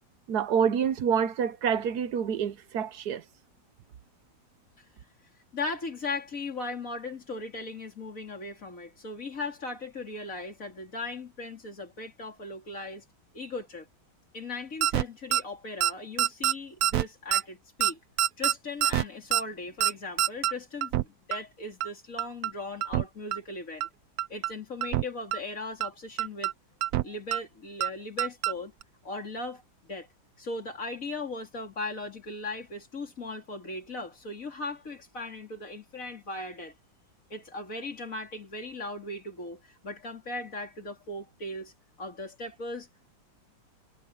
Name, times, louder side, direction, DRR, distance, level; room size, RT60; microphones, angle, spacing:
voice 1, 0.3-3.2, right 7 dB, 60° right, 1.2 m, -27 dB
voice 2, 5.5-13.0 13.3-13.9 14.3-18.0 18.4-23.9 24.3-26.5 27.0-28.7 29.0-30.1 30.4-36.7 37.3-41.7 42.0-43.1, left 2 dB, 40° left, 3.4 m, -38 dB
sound 1, 14.8-15.0 15.3-15.4 15.8-15.9 16.2-16.5 16.8-17.0 17.3-17.4 17.8-17.9 18.2-18.5 18.8-19.0 19.3-19.4 19.8-19.9 20.2-20.5 20.8-21.0 21.3-21.4 21.8-21.9 22.2-22.5 22.8-23.0 23.3-23.4 23.8-23.9 24.2-24.5 24.8-25.0 25.3-25.4 25.8-25.9 26.2-26.5 26.8-27.0 27.3-27.4 27.8-27.9 28.2-28.5 28.8-28.9, right 13 dB, 90° right, 0.8 m, -25 dB
omnidirectional pair, 2.2 m